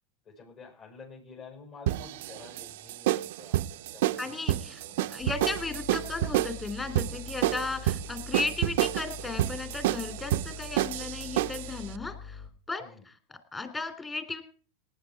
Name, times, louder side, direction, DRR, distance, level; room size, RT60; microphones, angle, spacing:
voice 1, 0.2-5.1 12.8-13.1, left 4 dB, 40° left, -4 dB, 6.5 m, -50 dB
sound 1, 1.9-11.7, right 14 dB, 75° right, 0.6 m, -29 dB
voice 2, 4.2-4.8 5.1-12.4 12.7-14.4, left 3 dB, 20° left, 8 dB, 3.0 m, -35 dB
sound 2, 5.2-12.5, left 5 dB, 70° left, 5.4 m, -44 dB
19.0 x 9.4 x 4.7 m, 0.42 s
supercardioid pair, 120°, 0 cm